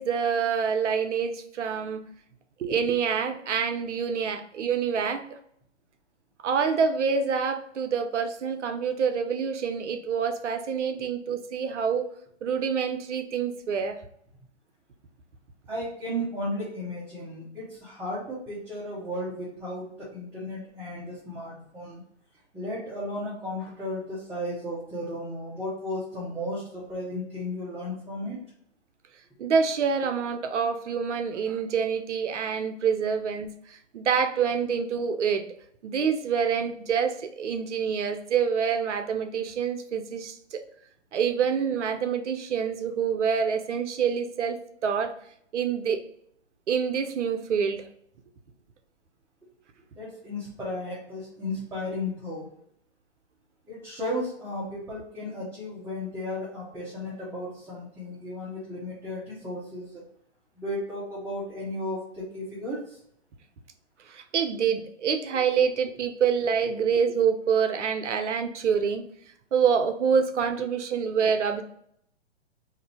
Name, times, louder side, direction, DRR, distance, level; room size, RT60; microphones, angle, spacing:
voice 1, 0.0-2.0 2.6-5.4 6.4-12.0 12.4-14.0 29.4-35.5 35.8-40.6 41.1-45.1 45.5-46.0 46.7-47.9 64.1-69.1 69.5-71.6, right 6 dB, 85° right, 7 dB, 0.6 m, -26 dB
voice 2, 15.7-22.0 22.5-28.4 50.0-52.5 53.7-60.0 60.6-63.0, left 1 dB, 5° right, -8 dB, 0.7 m, -34 dB
2.6 x 2.6 x 4.1 m, 0.68 s
hypercardioid pair, 135°, 34 cm